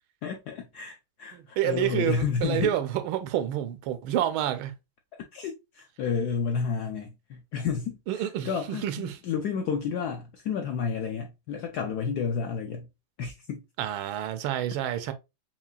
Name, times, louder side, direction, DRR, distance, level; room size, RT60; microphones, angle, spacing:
voice 1, 0.2-2.7 5.1-12.9 13.2-13.6, left 6 dB, 80° left, 0.9 m, -31 dB
voice 2, 1.3-4.7 8.1-9.2 13.8-15.1, right 11 dB, 85° right, 1.4 m, -29 dB
5.6 x 2.4 x 2.3 m
omnidirectional pair, 2.2 m